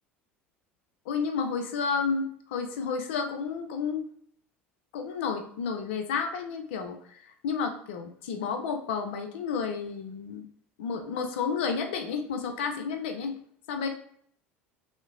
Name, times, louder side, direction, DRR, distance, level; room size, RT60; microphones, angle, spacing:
voice 1, 1.1-4.0 4.9-10.5 10.8-13.3 13.7-13.9, left 5 dB, 65° left, 5 dB, 0.4 m, -31 dB
3.0 x 2.1 x 2.3 m, 0.62 s
figure-of-eight pair, 70°, 7 cm